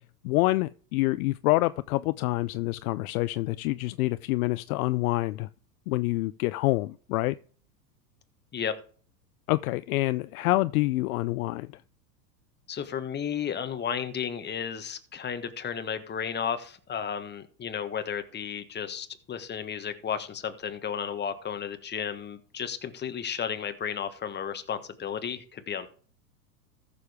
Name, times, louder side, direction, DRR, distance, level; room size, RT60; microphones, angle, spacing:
voice 1, 0.2-5.5 5.9-7.3 9.5-11.7, left 20 dB, 60° left, 0.5 m, -27 dB
voice 2, 12.7-25.9, left 7 dB, 20° left, 1.3 m, -33 dB
14.0 x 7.0 x 3.5 m
hypercardioid pair, 110°, 50 cm